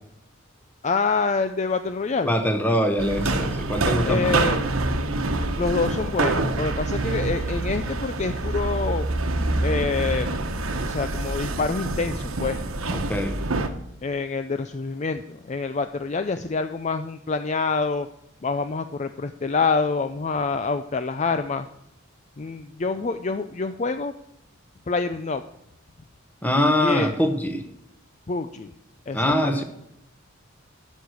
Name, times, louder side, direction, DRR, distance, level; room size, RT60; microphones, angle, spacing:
voice 1, 0.8-2.3 4.0-4.6 5.6-9.1 9.6-10.3 10.8-12.6 14.0-18.1 18.4-21.7 22.4-24.1 24.9-25.4 26.8-27.1 28.3-28.7 29.1-29.6, left 4 dB, 35° left, 9 dB, 0.4 m, -26 dB
voice 2, 2.3-4.3 12.9-13.3 26.4-27.6 29.1-29.6, equal, 10° left, 6 dB, 1.2 m, -23 dB
sound 1, 3.0-13.7, right 2 dB, 85° right, 1.1 m, -26 dB
11.0 x 6.4 x 8.3 m, 0.78 s
head